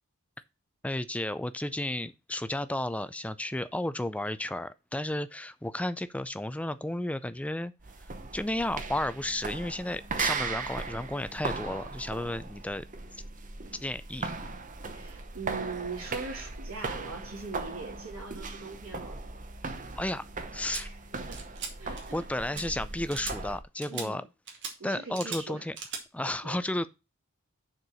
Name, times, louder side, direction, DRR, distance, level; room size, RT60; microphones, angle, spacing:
voice 1, 0.8-7.7 8.3-12.8 13.8-14.3 20.0-20.2 20.5-20.9 22.1-24.2 24.8-25.8 26.1-26.9, left 1 dB, 5° left, 0.4 m, -33 dB
sound 1, 7.8-23.6, right 4 dB, 40° right, 0.9 m, -38 dB
voice 2, 14.9-19.2 20.6-21.4 21.8-22.2 23.9-24.3 24.8-25.7 26.2-26.6, right 4 dB, 75° right, 2.9 m, -41 dB
sound 2, 20.7-20.8 21.3-21.7 22.0-22.2 22.5-22.6 23.1-23.4 23.8-24.1 24.5-24.7 25.1-25.4 25.8-26.0, right 5 dB, 60° right, 2.3 m, -38 dB
6.7 x 4.5 x 6.2 m
head